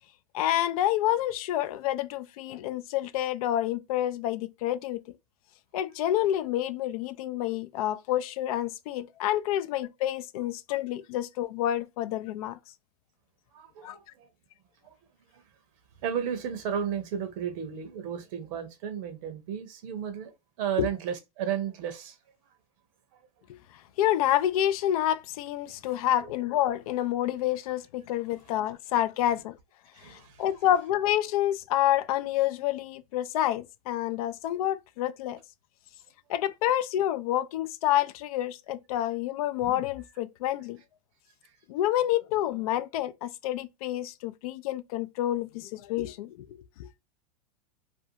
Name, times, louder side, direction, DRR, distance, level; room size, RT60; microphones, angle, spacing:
voice 1, 0.3-5.0 5.7-12.6 13.8-14.0 24.0-29.6 30.0-35.4 36.3-40.8 41.7-46.4 46.8-46.9, left 12 dB, 65° left, 0.4 m, -28 dB
voice 2, 13.5-14.3 14.8-14.9 15.3-15.4 16.0-20.3 20.6-22.2 23.1-23.3 25.7-25.8 26.2-26.3 29.9-30.4 34.2-34.3 41.4-41.6, right 8 dB, 55° right, 0.7 m, -34 dB
2.6 x 2.3 x 2.6 m
supercardioid pair, 135°, 20 cm